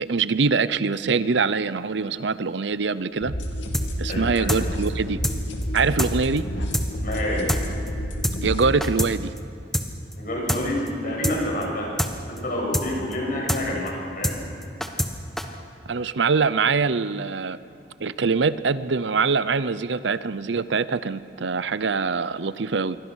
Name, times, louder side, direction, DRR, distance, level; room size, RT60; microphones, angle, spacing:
voice 1, 0.0-3.3 4.0-5.2 5.7-6.4 8.4-9.3 15.9-17.6 18.0-23.0, right 4 dB, 75° right, 15 dB, 0.7 m, -23 dB
sound 1, 3.2-8.7, equal, 85° left, 2.7 m, -29 dB
sound 2, 3.7-4.1 4.5-4.6 4.9-5.0 5.2-5.4 5.6-5.7 6.0-6.1 6.4-6.5 6.7-6.9 7.1-7.2 7.5-7.6 7.9-8.0 8.2-8.4 8.6-9.1 9.4-9.5 9.7-9.9 10.1-10.2 10.5-10.6 10.9-11.0 11.2-11.4 11.6-11.7 12.0-12.1 12.4-12.5 12.7-12.9 13.1-13.2 13.5-13.6 13.9-14.0 14.2-14.4 14.6-15.1 15.4-15.5, equal, ahead, 1.2 m, -25 dB
voice 2, 4.1-4.5 7.0-7.5 10.2-12.0 12.3-14.4, left 1 dB, 50° left, -1 dB, 7.0 m, -28 dB
26.5 x 23.5 x 6.4 m, 2.6 s
head